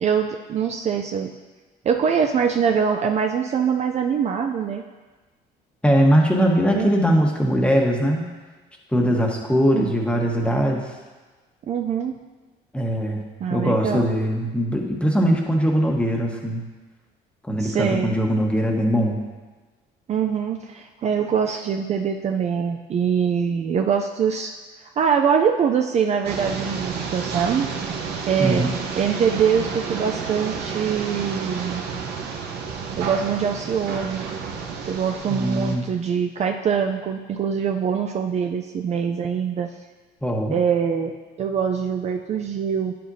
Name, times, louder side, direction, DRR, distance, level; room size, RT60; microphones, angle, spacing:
voice 1, 0.0-1.3 1.8-4.8 6.3-7.0 9.7-9.9 11.7-12.2 13.4-14.1 17.6-18.1 20.1-24.5 25.0-27.7 28.3-31.8 33.0-34.3 34.9-39.7 40.5-42.9, right 7 dB, 40° right, 4 dB, 0.4 m, -23 dB
voice 2, 5.8-8.3 8.9-10.8 12.7-13.2 13.5-16.6 17.5-19.2 28.4-28.7 35.3-35.9 40.2-40.5, equal, 5° left, 0 dB, 1.2 m, -21 dB
sound 1, 26.2-35.8, right 5 dB, 75° right, 0.9 m, -31 dB
9.6 x 7.5 x 2.7 m, 1.3 s
cardioid pair, 110°, 17 cm